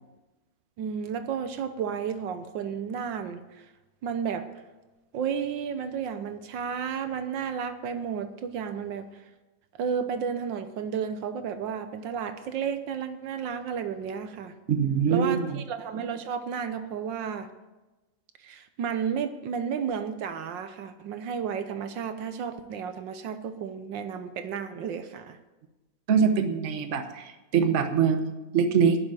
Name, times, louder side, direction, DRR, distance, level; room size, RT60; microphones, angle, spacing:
voice 1, 0.8-3.7 4.0-4.5 5.1-9.2 9.8-14.5 15.1-17.5 18.4-25.4, right 7 dB, 75° right, 9 dB, 1.5 m, -32 dB
voice 2, 14.7-15.6 26.1-29.0, right 6 dB, 45° right, 7 dB, 1.2 m, -24 dB
11.0 x 7.4 x 9.0 m, 1.1 s
omnidirectional pair, 2.1 m